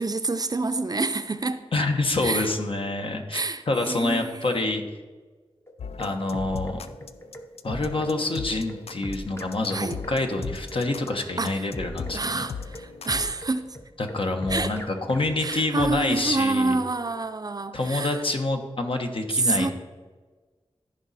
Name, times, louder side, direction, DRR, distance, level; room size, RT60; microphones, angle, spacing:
voice 1, 0.0-1.6 2.2-2.5 3.3-4.5 9.7-10.0 11.4-11.7 12.1-13.8 14.5-14.8 15.4-18.2 19.3-19.7, right 3 dB, 40° right, 10 dB, 0.5 m, -27 dB
voice 2, 1.7-4.8 6.0-6.8 7.6-12.4 14.0-16.8 17.7-19.7, left 2 dB, 60° left, 4 dB, 1.1 m, -27 dB
sound 1, 5.7-16.3, left 1 dB, 25° left, 0.8 m, -39 dB
sound 2, 5.8-13.3, left 6 dB, 85° left, 0.4 m, -39 dB
14.5 x 5.1 x 4.2 m, 1.4 s
wide cardioid pair, 60°, 10 cm